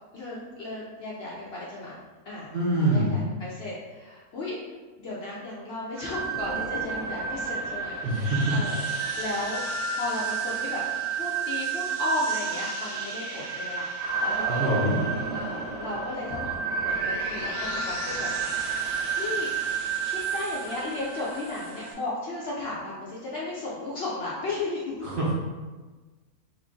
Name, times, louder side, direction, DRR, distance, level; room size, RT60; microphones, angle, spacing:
voice 1, 0.1-1.9 2.3-2.5 2.8-4.6 5.0-8.8 9.2-9.6 9.9-10.8 11.2-13.9 14.2-14.7 15.3-16.5 16.8-18.3 19.2-19.5 20.0-24.9, left 2 dB, 60° left, -6 dB, 0.7 m, -34 dB
voice 2, 2.5-3.1 8.0-8.4 14.5-15.0 25.0-25.3, right 1 dB, 55° right, -7 dB, 0.6 m, -25 dB
sound 1, 6.0-21.9, right 5 dB, 70° right, 1.0 m, -31 dB
3.1 x 2.4 x 3.7 m, 1.3 s
omnidirectional pair, 1.5 m